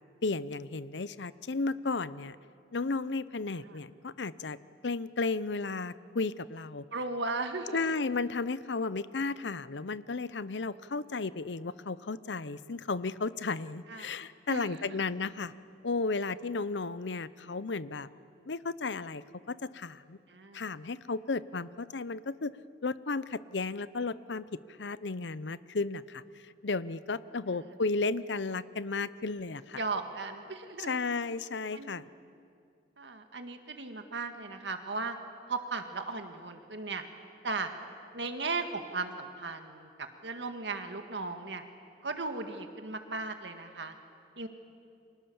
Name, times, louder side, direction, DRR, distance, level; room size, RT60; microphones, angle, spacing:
voice 1, 0.2-2.4 2.7-4.6 4.8-6.8 7.7-15.5 15.8-18.1 18.5-20.2 20.5-22.5 22.8-24.4 24.8-26.2 26.6-29.8 30.8-32.1, left 3 dB, 85° left, 16 dB, 0.8 m, -34 dB
voice 2, 6.9-7.8 13.9-14.1 14.5-14.8 20.3-20.7 29.8-31.0 31.7-32.0 33.0-35.2 35.5-37.0 37.4-37.7 38.1-41.6 42.0-43.9 44.4-44.5, right 3 dB, 80° right, 6 dB, 1.8 m, -36 dB
30.0 x 25.5 x 7.1 m, 2.4 s
head